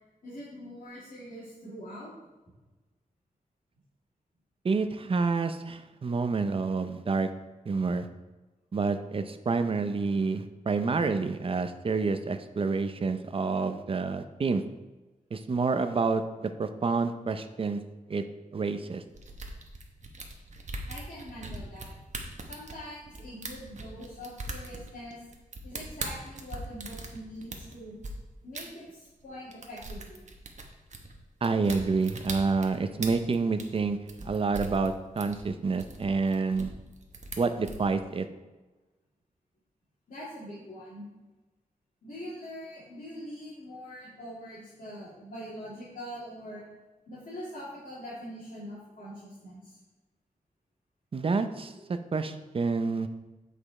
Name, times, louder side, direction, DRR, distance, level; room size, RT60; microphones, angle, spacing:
voice 1, 0.2-2.1 20.9-21.9 22.5-25.2 25.6-27.9 28.4-30.2 40.1-41.0 42.0-46.6 47.1-49.8 51.7-51.8, equal, 65° left, -11 dB, 2.8 m, -43 dB
voice 2, 4.6-7.3 7.7-8.1 8.7-14.6 15.3-17.8 18.1-18.2 18.5-19.0 31.4-36.7 37.4-38.3 51.1-53.1, right 4 dB, 40° right, 9 dB, 0.5 m, -28 dB
sound 1, 19.1-28.1 28.5-28.6 29.1-29.3 29.5-37.8, right 3 dB, 55° right, 1.0 m, -40 dB
8.4 x 5.1 x 4.2 m, 1.2 s
wide cardioid pair, 145°, 15 cm